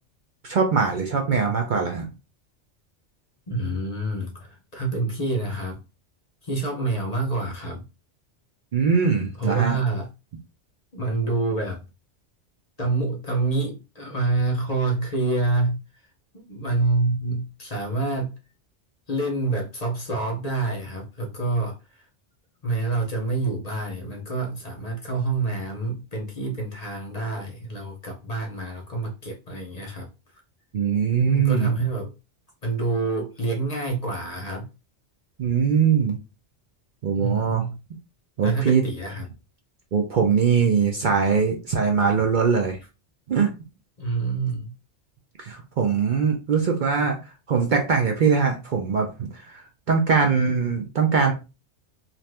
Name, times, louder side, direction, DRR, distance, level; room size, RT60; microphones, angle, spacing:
voice 1, 0.4-2.0 8.7-9.8 30.7-31.7 35.4-36.2 37.0-37.6 38.4-38.8 39.9-42.8 43.3-43.5 45.4-47.2 47.5-51.3, right 6 dB, 55° right, 2 dB, 0.6 m, -22 dB
voice 2, 3.5-5.8 6.4-7.8 9.4-10.1 10.9-11.8 12.8-15.8 16.3-18.3 19.1-21.7 22.6-30.1 31.3-32.1 32.6-34.7 37.1-37.8 38.4-39.3 44.0-44.7, right 3 dB, 40° left, 1 dB, 0.7 m, -27 dB
2.7 x 2.5 x 3.3 m, 0.29 s
omnidirectional pair, 1.2 m